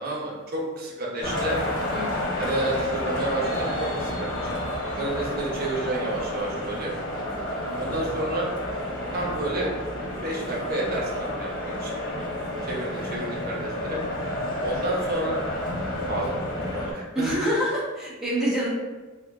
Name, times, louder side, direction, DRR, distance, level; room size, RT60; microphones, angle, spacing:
voice 1, 0.0-1.6 2.4-4.5 5.0-6.9 7.8-8.5 9.1-9.7 10.2-11.9 12.7-14.0 14.6-15.4 16.1-17.3, right 1 dB, 45° right, -3 dB, 0.9 m, -30 dB
sound 1, 1.2-16.9, left 1 dB, 45° left, 1.5 m, -30 dB
voice 2, 1.9-2.4 4.9-5.2 7.3-7.7 17.1-18.7, equal, 5° right, -9 dB, 1.2 m, -28 dB
3.0 x 2.8 x 3.5 m, 1.2 s
head